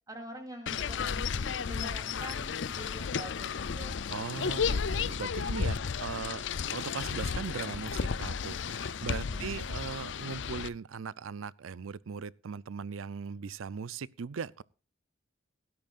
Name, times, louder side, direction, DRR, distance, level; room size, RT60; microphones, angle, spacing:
voice 1, 0.1-4.1 9.2-9.7, equal, 15° right, 3.2 m, -45 dB
sound 1, 0.7-10.7, left 6 dB, 65° left, 0.5 m, -33 dB
voice 2, 4.1-6.4 6.7-14.6, right 5 dB, 90° right, 0.5 m, -39 dB
17.0 x 12.5 x 2.5 m
head